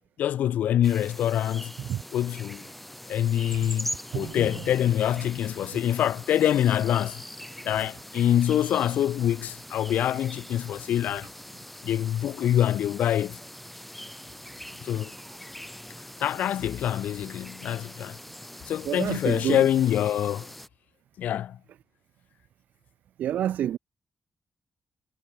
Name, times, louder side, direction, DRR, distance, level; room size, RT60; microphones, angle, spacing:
voice 1, 0.2-1.7 2.1-2.6 3.1-7.2 7.6-11.3 11.8-13.4 14.8-15.1 16.2-18.2 18.7-20.5 21.2-21.6, left 11 dB, 90° left, 0.4 m, -25 dB
sound 1, 0.8-20.7, left 1 dB, 5° left, 0.8 m, -42 dB
voice 2, 4.1-4.6 5.7-5.8 18.8-19.6 23.2-23.8, right 11 dB, 85° right, 0.5 m, -29 dB
wide cardioid pair, 140°, 3 cm